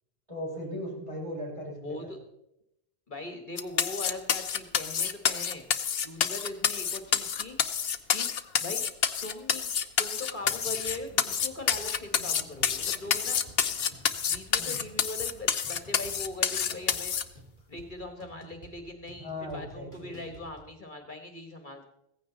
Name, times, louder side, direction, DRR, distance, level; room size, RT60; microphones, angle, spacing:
voice 1, 0.3-2.1 14.6-14.8 19.2-20.3, left 1 dB, 30° right, -3 dB, 5.3 m, -38 dB
voice 2, 1.8-2.2 3.1-5.6 6.0-7.6 8.1-8.3 8.6-8.8 9.2-9.7 10.0-13.4 14.3-17.1 17.7-21.8, left 2 dB, 50° left, 5 dB, 1.8 m, -40 dB
sound 1, 3.6-17.2, left 7 dB, 70° left, 1.0 m, -28 dB
sound 2, 10.4-20.7, right 1 dB, 50° right, 3.2 m, -53 dB
16.5 x 15.0 x 4.0 m, 0.82 s
omnidirectional pair, 1.0 m